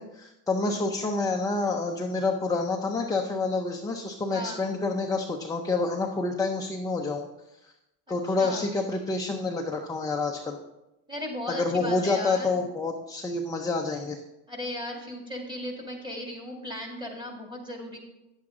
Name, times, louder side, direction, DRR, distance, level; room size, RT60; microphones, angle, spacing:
voice 1, 0.0-7.3 7.6-7.7 8.1-10.6 11.5-14.2, left 3 dB, 10° left, 1 dB, 0.4 m, -28 dB
voice 2, 4.3-4.6 8.1-8.7 11.1-12.6 14.5-18.0, left 1 dB, 10° right, 1 dB, 2.0 m, -36 dB
9.7 x 7.6 x 3.7 m, 0.92 s
cardioid pair, 120°, 49 cm